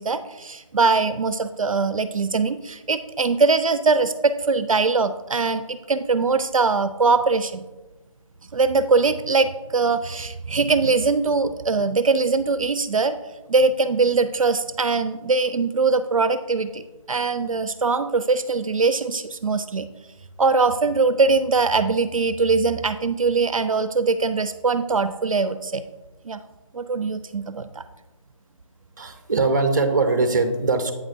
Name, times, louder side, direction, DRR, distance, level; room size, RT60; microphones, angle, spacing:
voice 1, 0.0-7.7 8.5-13.2 13.5-19.9 20.4-25.9 26.2-26.4 26.7-27.8, right 4 dB, 80° right, 12 dB, 0.4 m, -22 dB
voice 2, 29.0-30.9, right 3 dB, 35° right, 7 dB, 0.7 m, -21 dB
8.5 x 7.2 x 2.6 m, 1.1 s
figure-of-eight pair, 160°, 17 cm